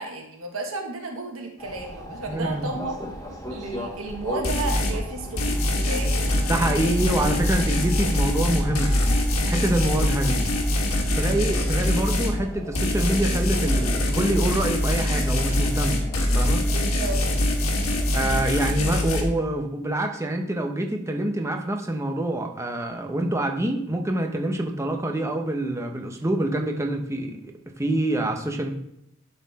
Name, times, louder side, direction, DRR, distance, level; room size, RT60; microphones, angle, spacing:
voice 1, 0.0-2.9 3.5-6.2 6.8-6.9 16.7-17.2, right 2 dB, 70° right, 2 dB, 1.5 m, -33 dB
sound 1, 1.6-18.1, equal, 15° left, 1.2 m, -37 dB
voice 2, 2.3-2.7 6.4-9.0 9.4-10.4 11.2-16.0 16.3-16.6 18.1-27.4 27.8-28.7, right 1 dB, 15° right, 3 dB, 0.9 m, -26 dB
sound 2, 4.4-5.0 5.4-12.4 12.8-19.2, left 1 dB, 90° left, 1.5 m, -23 dB
11.5 x 4.4 x 4.1 m, 0.79 s
head